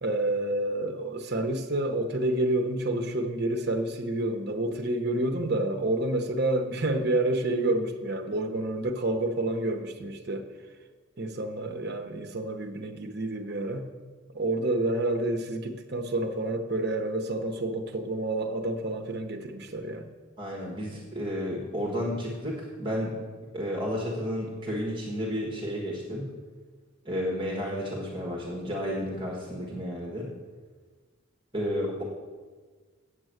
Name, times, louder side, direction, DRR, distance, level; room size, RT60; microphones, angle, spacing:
voice 1, 0.0-10.5 11.2-13.8 14.3-20.1, right 1 dB, 50° right, 0.8 m, -29 dB
voice 2, 20.4-23.2 23.5-26.3 27.0-30.3 31.5-32.0, equal, 25° right, 1.4 m, -32 dB
8.1 x 6.1 x 7.9 m
head